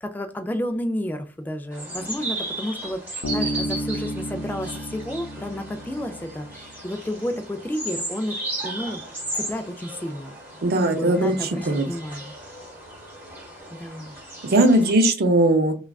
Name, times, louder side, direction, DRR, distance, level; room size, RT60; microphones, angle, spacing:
voice 1, 0.0-9.0 9.3-10.4 11.0-12.3 13.7-14.1, left 1 dB, 10° left, 6 dB, 0.3 m, -31 dB
sound 1, 1.7-14.9, right 1 dB, 10° right, 1.0 m, -35 dB
Bass guitar, 3.2-6.8, equal, 70° left, 0.7 m, -32 dB
voice 2, 10.6-11.9 14.4-15.7, right 1 dB, 55° right, 6 dB, 0.5 m, -19 dB
3.4 x 2.3 x 2.3 m, 0.34 s
head